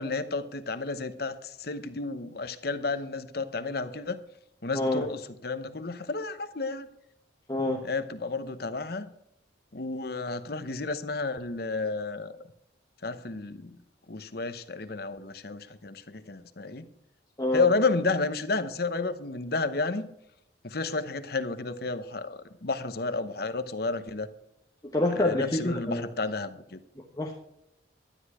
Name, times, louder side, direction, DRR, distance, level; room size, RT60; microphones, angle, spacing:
voice 1, 0.0-4.2 4.6-6.9 7.8-9.1 9.7-12.3 13.0-13.8 14.1-16.9 17.5-20.1 20.6-24.3 25.2-26.8, left 3 dB, 55° left, 10 dB, 0.9 m, -31 dB
voice 2, 4.7-5.1 7.5-7.8 17.4-17.7 24.9-26.1 27.0-27.3, left 1 dB, 20° left, 0 dB, 1.0 m, -27 dB
12.5 x 10.0 x 4.9 m, 0.79 s
head